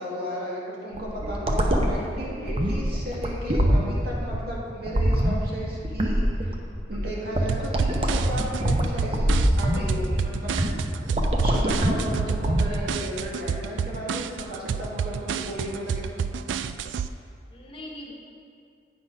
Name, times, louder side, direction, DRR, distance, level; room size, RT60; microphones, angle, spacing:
voice 1, 0.0-6.5 6.9-10.5 11.4-16.2, equal, 55° right, -5 dB, 2.0 m, -34 dB
sound 1, 0.9-12.8, equal, 30° right, 0.7 m, -24 dB
sound 2, 7.5-17.1, right 6 dB, 80° right, 0.3 m, -30 dB
voice 2, 11.8-12.5 17.5-18.1, equal, 30° left, -2 dB, 1.1 m, -42 dB
8.8 x 6.1 x 5.4 m, 2.3 s
head